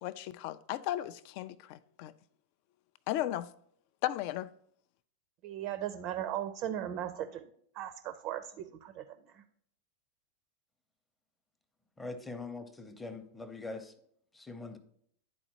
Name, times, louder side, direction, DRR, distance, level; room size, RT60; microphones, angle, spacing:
voice 1, 0.0-2.1 3.1-3.5 4.0-4.5, left 13 dB, 45° left, 0.3 m, -35 dB
voice 2, 5.4-7.5 7.7-9.0 9.3-9.4, right 11 dB, 40° right, 0.4 m, -37 dB
voice 3, 12.0-13.9 14.3-14.8, left 3 dB, 10° left, 0.7 m, -42 dB
11.0 x 4.2 x 2.8 m
figure-of-eight pair, 90°, 0 cm